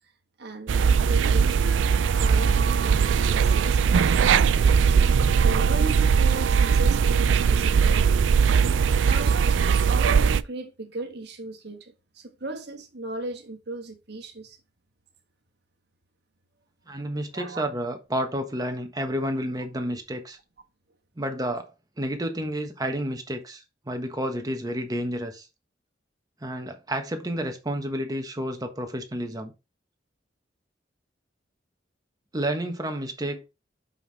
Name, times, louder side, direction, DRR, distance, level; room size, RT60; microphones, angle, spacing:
voice 1, 0.4-4.2 4.8-8.2 9.0-14.6 17.3-17.6, right 2 dB, 65° right, 1.4 m, -37 dB
sound 1, 0.7-10.4, right 6 dB, 90° right, 0.4 m, -20 dB
voice 2, 16.9-20.4 21.2-21.7 22.0-25.5 26.4-29.5 32.3-33.5, right 1 dB, 20° right, 1.3 m, -30 dB
5.7 x 5.6 x 4.1 m
head